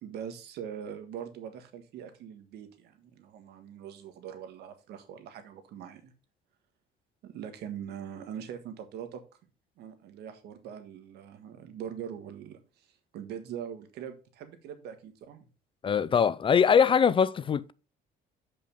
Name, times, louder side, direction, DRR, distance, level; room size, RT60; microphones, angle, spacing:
voice 1, 0.0-6.1 7.2-9.2 9.8-12.9 13.1-15.4, right 8 dB, 75° right, 1.5 m, -42 dB
voice 2, 15.8-17.7, left 7 dB, 30° left, 0.4 m, -22 dB
7.1 x 5.5 x 5.2 m
cardioid pair, 110°, 17 cm